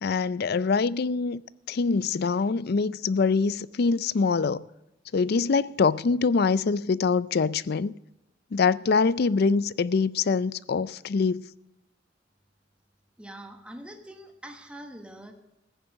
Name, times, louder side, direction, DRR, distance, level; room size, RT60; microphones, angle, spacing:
voice 1, 0.0-1.4 1.7-4.6 5.1-7.9 8.5-11.4, left 4 dB, 55° left, 0.4 m, -24 dB
voice 2, 13.2-15.3, right 1 dB, 5° right, 1.3 m, -44 dB
15.0 x 10.0 x 6.3 m
head